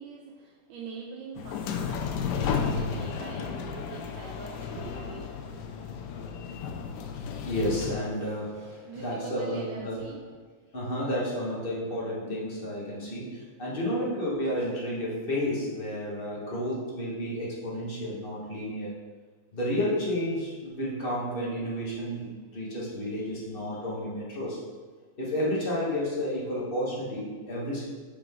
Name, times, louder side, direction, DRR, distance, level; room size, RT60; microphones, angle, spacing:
voice 1, 0.0-5.3 8.7-10.3, right 4 dB, 75° right, -2 dB, 1.2 m, -43 dB
sound 1, 1.4-8.0, left 6 dB, 75° left, 1.0 m, -33 dB
voice 2, 7.4-10.0 10.7-18.9 19.5-24.6 25.2-27.8, equal, 30° left, -6 dB, 1.3 m, -31 dB
6.8 x 3.9 x 3.6 m, 1.5 s
omnidirectional pair, 2.2 m